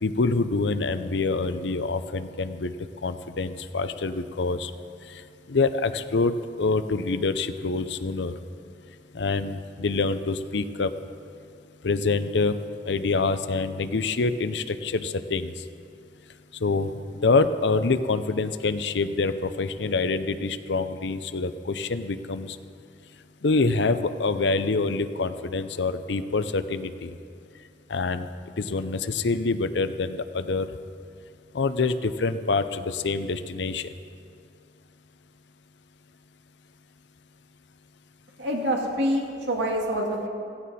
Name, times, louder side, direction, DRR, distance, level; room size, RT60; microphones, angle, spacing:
voice 1, 0.0-2.7 3.0-4.7 5.1-5.2 5.5-8.3 9.1-10.9 11.8-12.6 12.9-15.6 16.6-16.9 17.2-22.6 23.4-27.1 27.9-28.3 28.6-30.7 31.5-33.9, left 3 dB, 70° left, 11 dB, 0.6 m, -26 dB
voice 2, 38.4-40.3, equal, 75° right, 0 dB, 2.2 m, -26 dB
15.5 x 15.5 x 4.2 m, 2.4 s
head